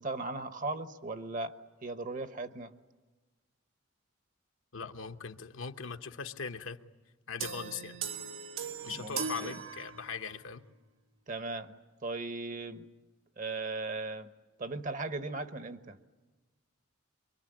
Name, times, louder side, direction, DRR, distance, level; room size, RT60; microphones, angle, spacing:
voice 1, 0.0-2.7 8.9-9.6 11.3-12.9 13.4-14.3 14.6-16.0, right 3 dB, 40° right, 10 dB, 1.1 m, -38 dB
voice 2, 4.7-6.8 7.3-8.0 8.8-10.6, left 5 dB, 70° left, 6 dB, 1.1 m, -40 dB
sound 1, 7.4-10.4, right 6 dB, 75° right, 1.6 m, -39 dB
25.5 x 23.5 x 10.0 m, 1.3 s
head